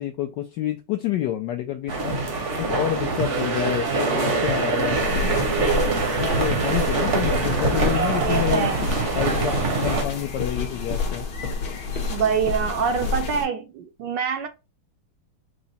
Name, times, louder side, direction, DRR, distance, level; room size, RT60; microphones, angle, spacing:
voice 1, 0.0-2.2 2.6-5.0 5.6-5.9 6.2-8.7 9.2-11.3, left 10 dB, 75° left, 1.0 m, -28 dB
sound 1, 1.9-10.0, right 3 dB, 50° right, 0.9 m, -24 dB
sound 2, 4.9-13.5, left 4 dB, 55° left, 1.3 m, -29 dB
voice 2, 8.2-8.9 12.1-14.5, right 7 dB, 75° right, 1.0 m, -25 dB
4.8 x 2.1 x 4.0 m
omnidirectional pair, 2.4 m